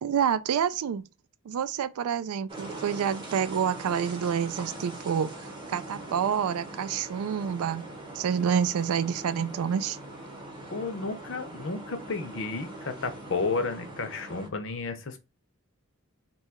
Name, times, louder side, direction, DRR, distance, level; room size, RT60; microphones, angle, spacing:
voice 1, 0.0-1.1 1.5-7.8 8.1-10.0, right 8 dB, 80° right, 0.3 m, -28 dB
sound 1, 2.5-14.5, right 1 dB, 20° right, 0.8 m, -42 dB
voice 2, 10.7-15.2, left 3 dB, 55° left, 0.6 m, -32 dB
2.8 x 2.3 x 4.2 m
head